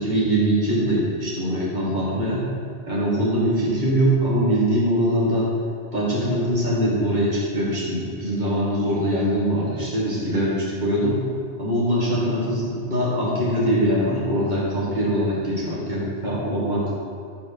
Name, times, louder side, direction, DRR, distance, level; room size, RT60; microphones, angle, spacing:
voice 1, 0.0-2.5 2.9-5.5 5.9-11.2 11.6-16.9, equal, 40° right, -7 dB, 1.7 m, -22 dB
7.2 x 4.7 x 4.6 m, 2.2 s
omnidirectional pair, 1.3 m